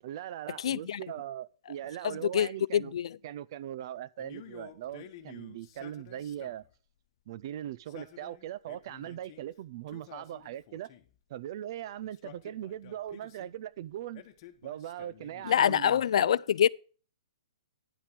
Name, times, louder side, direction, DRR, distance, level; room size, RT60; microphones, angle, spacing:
voice 1, 0.0-3.0 3.2-6.6 7.3-10.9 11.3-14.2 14.6-16.4, right 11 dB, 45° right, 0.5 m, -40 dB
voice 2, 0.6-1.0 2.3-3.1 15.5-16.7, left 9 dB, 65° left, 0.3 m, -25 dB
Male speech man speaking, 4.2-6.7 7.7-9.5 9.9-11.2 12.0-13.5 14.1-15.7, left 11 dB, 35° left, 1.2 m, -52 dB
10.0 x 5.8 x 6.2 m
hypercardioid pair, 160°, 3 cm